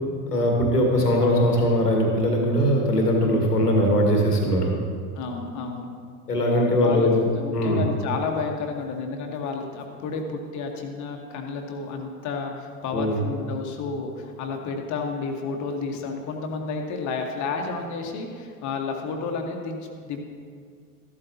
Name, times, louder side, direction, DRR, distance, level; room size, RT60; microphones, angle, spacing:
voice 1, 0.3-4.7 6.3-7.3 7.5-7.8 12.9-13.2, equal, 80° left, 0 dB, 1.9 m, -21 dB
voice 2, 5.1-5.9 6.8-20.2, left 4 dB, 40° left, 2 dB, 1.5 m, -31 dB
13.5 x 12.0 x 2.9 m, 2.1 s
figure-of-eight pair, 80°, 46 cm